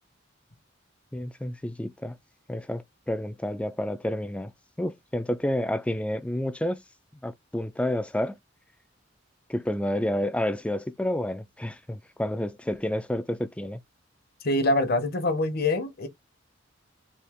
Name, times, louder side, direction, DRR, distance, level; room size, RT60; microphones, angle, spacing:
voice 1, 1.1-2.2 2.5-4.5 4.8-6.8 7.2-8.4 9.5-13.8, left 1 dB, 5° left, 0.3 m, -29 dB
voice 2, 14.4-16.1, left 2 dB, 50° left, 0.9 m, -25 dB
4.2 x 2.7 x 3.5 m
head